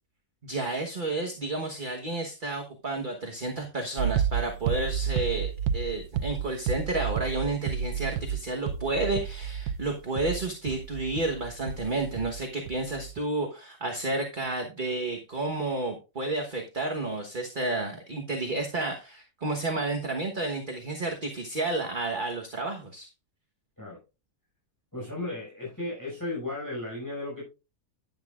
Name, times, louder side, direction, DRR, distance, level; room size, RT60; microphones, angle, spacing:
voice 1, 0.4-23.1, right 2 dB, 35° right, 2 dB, 1.3 m, -31 dB
sound 1, 4.0-12.4 12.7-13.2, right 8 dB, 85° right, 1.2 m, -31 dB
voice 2, 24.9-27.4, left 2 dB, 10° left, -4 dB, 5.9 m, -35 dB
10.5 x 10.5 x 2.4 m, 0.29 s
omnidirectional pair, 1.6 m